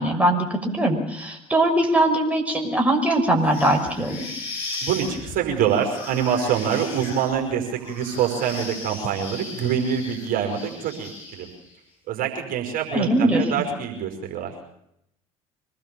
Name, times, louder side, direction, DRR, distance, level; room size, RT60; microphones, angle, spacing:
voice 1, 0.0-4.2 12.9-13.4, right 1 dB, 10° right, 2 dB, 6.0 m, -21 dB
sound 1, 3.4-11.7, left 3 dB, 70° left, 7.7 m, -37 dB
voice 2, 4.8-11.5 12.1-14.5, right 8 dB, 50° right, 3 dB, 5.3 m, -25 dB
25.0 x 19.5 x 7.1 m, 0.77 s
figure-of-eight pair, 60°, 18 cm